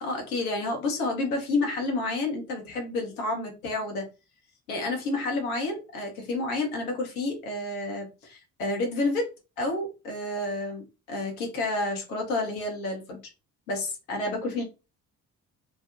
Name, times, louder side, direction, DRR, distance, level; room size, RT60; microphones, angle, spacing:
voice 1, 0.0-4.1 4.7-9.3 9.6-13.2 13.7-14.6, left 2 dB, 70° left, 0.9 m, -30 dB
2.5 x 2.1 x 2.4 m
figure-of-eight pair, 45°, 43 cm